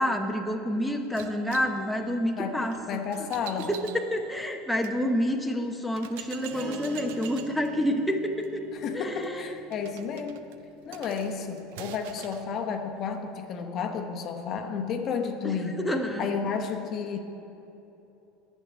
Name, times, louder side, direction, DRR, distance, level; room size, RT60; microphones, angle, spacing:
voice 1, 0.0-3.0 3.7-8.6 8.9-9.5 15.4-16.3, equal, 5° left, 2 dB, 0.9 m, -28 dB
sound 1, 1.2-5.0 5.5-5.6 6.0-12.5, right 10 dB, 75° right, 0.5 m, -46 dB
voice 2, 2.4-3.7 8.7-10.5 10.9-15.9 16.2-17.2, left 6 dB, 50° left, 5 dB, 0.9 m, -32 dB
Acoustic guitar / Strum, 6.5-11.1 13.0-13.1, right 4 dB, 15° right, 2.4 m, -44 dB
9.7 x 6.5 x 8.5 m, 3.0 s
hypercardioid pair, 95°, 0 cm